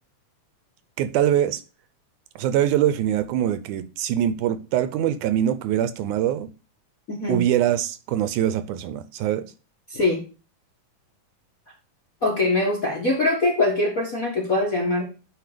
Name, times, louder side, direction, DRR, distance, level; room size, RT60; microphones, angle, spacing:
voice 1, 1.0-1.6 2.4-6.5 7.3-9.5, right 11 dB, 80° right, 2.0 m, -23 dB
voice 2, 7.1-7.4 9.9-10.2 12.2-15.0, left 2 dB, 45° left, 1.2 m, -22 dB
9.5 x 3.7 x 4.9 m
omnidirectional pair, 3.7 m